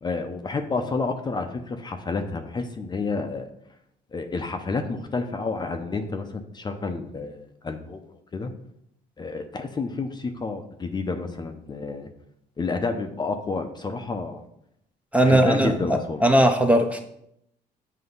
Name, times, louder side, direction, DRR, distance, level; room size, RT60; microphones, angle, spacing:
voice 1, 0.0-3.5 4.1-8.0 8.3-8.5 9.2-12.1 12.6-14.4 15.2-16.2, left 3 dB, 25° left, 6 dB, 0.6 m, -30 dB
voice 2, 15.1-17.0, right 1 dB, 10° right, 5 dB, 0.6 m, -19 dB
7.8 x 2.8 x 5.4 m, 0.74 s
cardioid pair, 110°, 17 cm